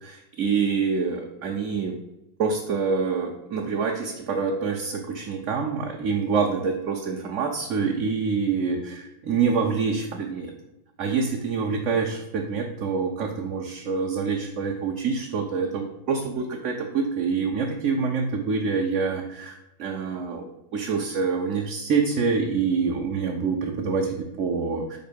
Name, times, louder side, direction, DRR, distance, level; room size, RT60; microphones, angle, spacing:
voice 1, 0.0-2.0 2.4-10.5 11.0-20.5 20.7-25.0, right 5 dB, 40° right, 0 dB, 0.5 m, -26 dB
4.1 x 2.6 x 4.5 m, 0.95 s
figure-of-eight pair, 90°, 0 cm